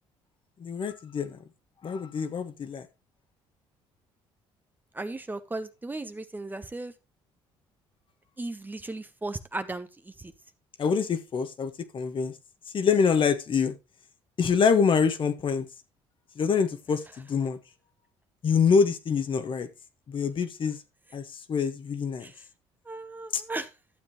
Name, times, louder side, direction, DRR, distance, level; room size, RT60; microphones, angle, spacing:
voice 1, 0.6-1.4 1.8-2.9 10.8-12.3 12.7-13.7 14.4-15.6 16.4-17.6 18.4-19.7 20.1-20.8 21.1-21.2 21.5-22.3 23.3-23.4, left 6 dB, 45° left, 1.4 m, -25 dB
voice 2, 4.9-6.9 8.4-10.3 22.2-22.4 22.9-23.7, right 2 dB, 15° right, 0.9 m, -36 dB
12.0 x 7.3 x 3.0 m
supercardioid pair, 75°, 12 cm